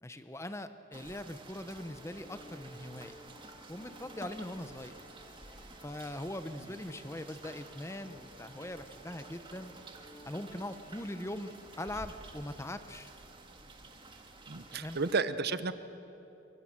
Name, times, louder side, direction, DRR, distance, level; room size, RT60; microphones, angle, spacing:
voice 1, 0.0-3.2 3.7-5.0 5.8-9.7 10.2-13.1 14.7-15.0, left 1 dB, 15° left, 10 dB, 0.9 m, -41 dB
sound 1, 0.9-15.2, right 2 dB, 25° right, 1.8 m, -52 dB
sound 2, 1.6-11.8, equal, 30° left, 2.5 m, -57 dB
voice 2, 14.5-15.7, right 4 dB, 50° right, 12 dB, 0.9 m, -32 dB
25.5 x 23.5 x 7.4 m, 3.0 s
head